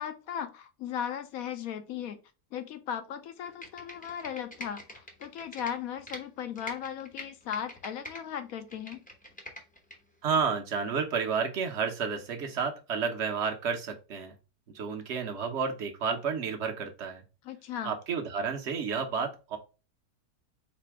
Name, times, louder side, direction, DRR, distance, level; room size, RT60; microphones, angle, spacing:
voice 1, 0.0-2.2 2.5-9.0 17.4-17.9, left 9 dB, 70° left, 9 dB, 1.1 m, -37 dB
Computer keyboard, 3.5-6.2 6.6-8.2 8.6-10.0 10.3-10.4, equal, 10° left, 0.6 m, -44 dB
voice 2, 10.2-14.3 14.7-17.2 17.8-19.6, right 5 dB, 50° right, 4 dB, 1.1 m, -31 dB
4.2 x 2.7 x 4.6 m, 0.31 s
omnidirectional pair, 1.6 m